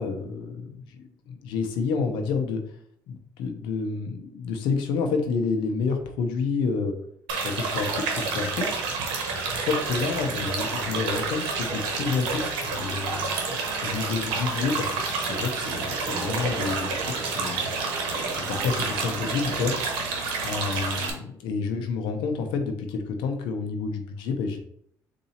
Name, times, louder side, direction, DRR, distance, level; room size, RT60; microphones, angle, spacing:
voice 1, 0.0-2.6 3.1-6.9 7.4-8.7 9.1-9.2 9.5-17.7 18.5-19.7 20.4-24.6, left 5 dB, 85° left, 4 dB, 0.8 m, -29 dB
sound 1, 7.3-21.1, right 4 dB, 90° right, 0.9 m, -29 dB
sound 2, 9.5-19.9, right 3 dB, 70° right, 1.1 m, -42 dB
4.0 x 2.6 x 4.2 m, 0.70 s
cardioid pair, 85°, 8 cm